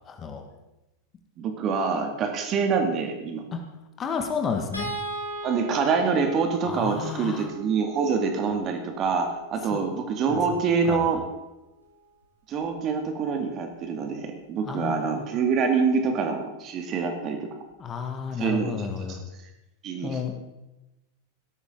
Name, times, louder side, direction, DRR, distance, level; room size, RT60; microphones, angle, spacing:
voice 1, 0.1-0.4 3.5-3.6 4.0-4.9 6.7-7.5 9.7-9.8 10.3-10.4 10.9-11.1 14.6-15.2 17.8-19.2 20.0-20.3, left 6 dB, 25° left, 4 dB, 1.8 m, -31 dB
voice 2, 1.4-3.4 5.4-11.2 12.5-17.5 18.4-19.2 19.8-20.3, right 5 dB, 30° right, 4 dB, 2.3 m, -26 dB
sound 1, 4.7-11.1 12.6-12.8 13.1-13.3, right 1 dB, 85° left, 3.5 m, -39 dB
18.0 x 13.0 x 3.9 m, 0.96 s
figure-of-eight pair, 90°, 0 cm